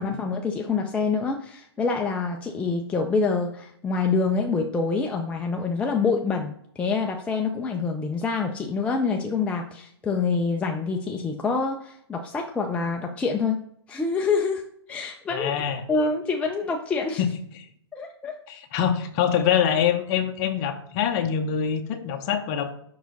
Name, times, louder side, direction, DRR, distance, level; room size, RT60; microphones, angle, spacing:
voice 1, 0.0-13.6 13.9-14.6 14.9-15.5 15.9-17.2 17.9-18.3, left 4 dB, 10° left, 2 dB, 0.4 m, -26 dB
voice 2, 15.3-15.8 17.2-17.3 18.5-22.8, left 8 dB, 35° left, 6 dB, 0.9 m, -24 dB
5.6 x 4.7 x 4.0 m, 0.67 s
hypercardioid pair, 135°, 14 cm